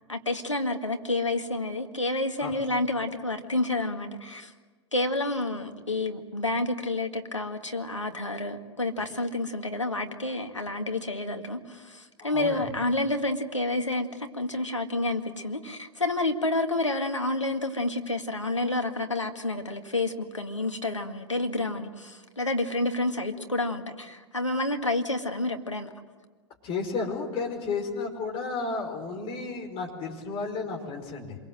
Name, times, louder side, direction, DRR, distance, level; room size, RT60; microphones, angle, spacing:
voice 1, 0.1-4.5 4.9-25.9, left 2 dB, 85° left, 5 dB, 2.0 m, -29 dB
voice 2, 12.2-12.6 26.6-31.4, left 4 dB, 35° left, 2 dB, 5.2 m, -33 dB
27.0 x 23.0 x 7.8 m, 1.4 s
figure-of-eight pair, 95°, 15 cm